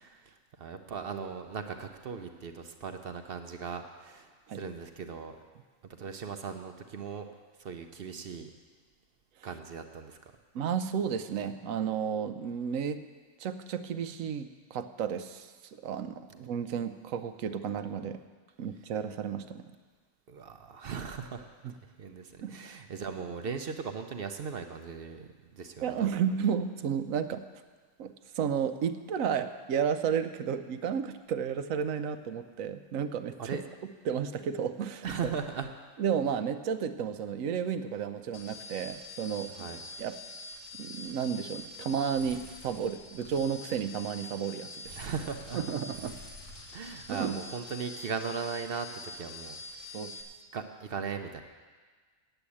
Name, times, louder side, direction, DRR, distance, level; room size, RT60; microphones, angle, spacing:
voice 1, 0.0-5.4 6.0-7.3 7.6-8.5 9.4-10.2 20.3-21.5 22.0-26.1 33.4-33.6 35.0-35.7 39.6-39.8 45.0-45.6 46.7-50.0 50.5-51.4, right 6 dB, 55° right, 7 dB, 0.8 m, -38 dB
voice 2, 10.5-13.0 13.4-18.2 18.6-19.6 21.6-21.7 22.4-22.5 25.8-27.4 28.0-33.4 34.1-35.2 36.0-39.7 40.0-40.2 40.7-45.0 45.6-46.2 47.1-47.4 49.9-50.1, right 7 dB, 90° right, 10 dB, 1.1 m, -32 dB
sound 1, 38.3-50.2, left 2 dB, 80° left, 2.0 m, -45 dB
8.9 x 8.0 x 8.4 m, 1.5 s
omnidirectional pair, 1.3 m